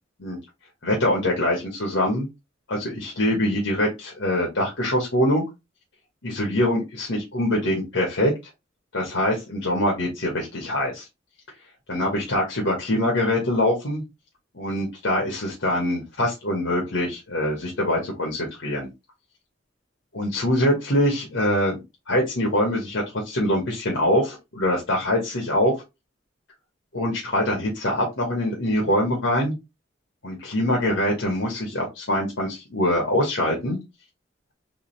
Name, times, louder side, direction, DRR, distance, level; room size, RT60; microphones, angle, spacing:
voice 1, 0.8-2.3 2.7-5.4 6.2-8.3 8.9-11.1 11.9-14.0 14.5-18.9 20.1-21.8 22.1-25.7 26.9-29.5 30.2-33.8, left 1 dB, 80° left, -1 dB, 1.4 m, -24 dB
3.8 x 3.3 x 3.3 m, 0.23 s
head